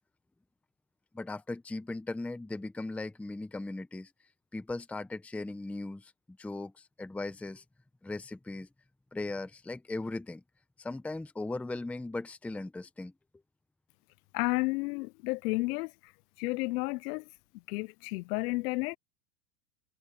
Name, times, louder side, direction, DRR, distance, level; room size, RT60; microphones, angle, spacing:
voice 1, 1.1-4.1 4.5-7.6 8.0-8.7 9.1-10.4 10.8-13.1, left 2 dB, 5° left, 0.8 m, -38 dB
voice 2, 14.3-15.9 16.4-17.2 17.7-19.0, left 23 dB, 70° left, 0.6 m, -31 dB
supercardioid pair, 140°, 49 cm